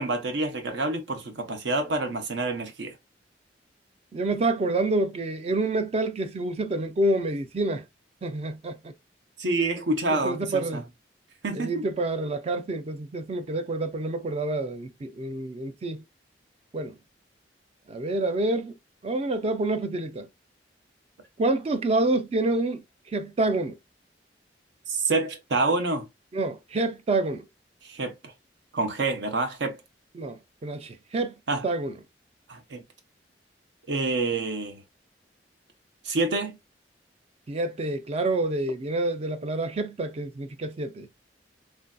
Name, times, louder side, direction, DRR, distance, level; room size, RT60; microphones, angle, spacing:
voice 1, 0.0-3.0 9.4-10.8 11.4-11.9 24.9-26.1 27.8-28.1 28.7-29.8 31.5-31.7 32.5-32.8 33.9-34.8 36.0-36.6, right 2 dB, 80° right, 0.7 m, -27 dB
voice 2, 4.1-7.8 8.2-8.9 10.1-10.8 11.5-16.0 16.7-17.0 17.9-18.7 19.0-20.3 21.4-23.8 26.3-27.4 30.2-31.3 31.6-31.9 37.5-41.1, right 2 dB, 35° right, 0.3 m, -28 dB
3.2 x 2.6 x 2.2 m
head